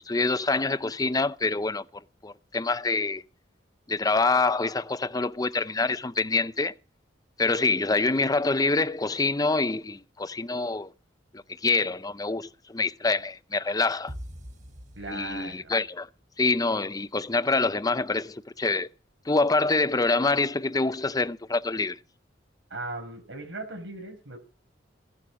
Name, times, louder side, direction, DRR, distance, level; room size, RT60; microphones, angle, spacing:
voice 1, 0.1-1.8 2.2-3.2 3.9-6.7 7.4-10.9 11.6-14.1 15.1-16.1 16.4-18.9 19.3-22.0, left 3 dB, 20° left, 0.6 m, -26 dB
sound 1, 14.1-15.9, equal, 45° right, 3.4 m, -42 dB
voice 2, 15.0-15.7 22.7-24.4, right 2 dB, 90° right, 5.6 m, -38 dB
17.0 x 11.5 x 4.9 m
head